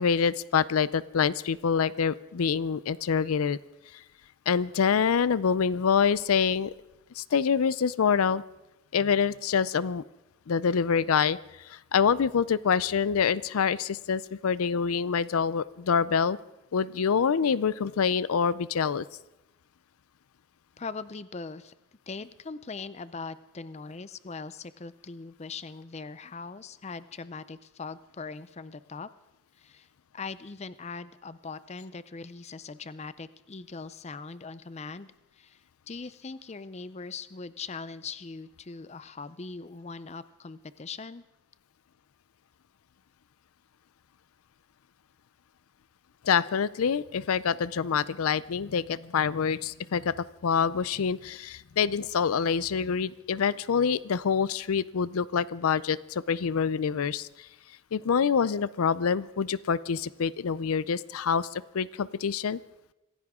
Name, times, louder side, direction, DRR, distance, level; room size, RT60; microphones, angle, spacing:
voice 1, 0.0-3.6 4.5-6.7 7.2-8.4 8.9-10.0 10.5-16.4 16.7-19.0 46.2-57.5 57.9-62.6, left 6 dB, 85° left, 18 dB, 0.5 m, -26 dB
voice 2, 20.8-21.7 22.1-29.1 29.6-29.9 30.1-35.6 35.9-41.2, left 4 dB, 30° left, 15 dB, 0.5 m, -41 dB
25.5 x 15.5 x 3.7 m, 0.96 s
head